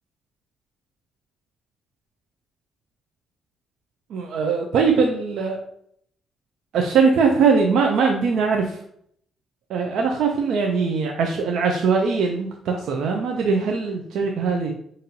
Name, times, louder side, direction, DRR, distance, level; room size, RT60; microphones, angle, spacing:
voice 1, 4.1-5.6 6.7-8.8 9.7-14.7, right 5 dB, 75° right, 1 dB, 0.5 m, -21 dB
5.2 x 2.6 x 2.8 m, 0.68 s
cardioid pair, 90°, 0 cm